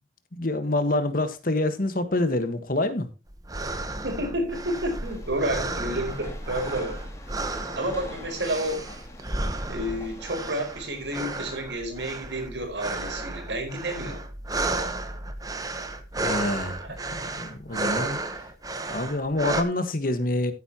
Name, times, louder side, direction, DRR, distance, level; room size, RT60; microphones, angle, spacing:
voice 1, 0.3-3.1 16.2-16.8 17.1-18.2 18.9-20.5, left 2 dB, 50° left, 1.5 m, -26 dB
sound 1, 3.3-19.6, right 2 dB, 20° right, 1.1 m, -33 dB
voice 2, 4.0-7.0 7.7-8.8 9.7-14.2, right 1 dB, 80° right, 4.7 m, -30 dB
Train, 5.0-11.6, left 1 dB, 15° left, 2.5 m, -45 dB
14.5 x 8.6 x 2.9 m
head